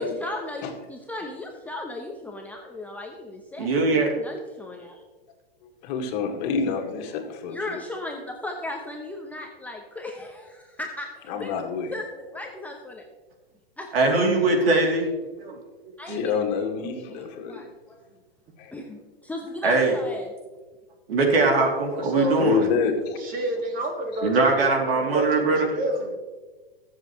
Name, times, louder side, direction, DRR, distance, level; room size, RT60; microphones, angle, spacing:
voice 1, 0.0-5.0 7.5-13.1 13.8-14.3 14.6-14.7 16.0-16.3 17.1-18.0 18.7-20.3, left 2 dB, 5° left, 0 dB, 0.9 m, -36 dB
voice 2, 3.6-4.1 13.9-15.1 15.4-15.6 16.1-16.2 19.6-20.0 21.1-22.7 24.2-25.7, right 3 dB, 75° right, 1 dB, 3.1 m, -21 dB
voice 3, 5.6-7.8 11.3-11.9 16.1-17.6 18.6-18.7 22.1-23.2, left 6 dB, 45° left, 3 dB, 2.1 m, -28 dB
voice 4, 21.9-22.6 23.2-26.1, right 1 dB, 30° right, 3 dB, 2.1 m, -30 dB
21.5 x 7.4 x 3.2 m, 1.3 s
hypercardioid pair, 135°, 30 cm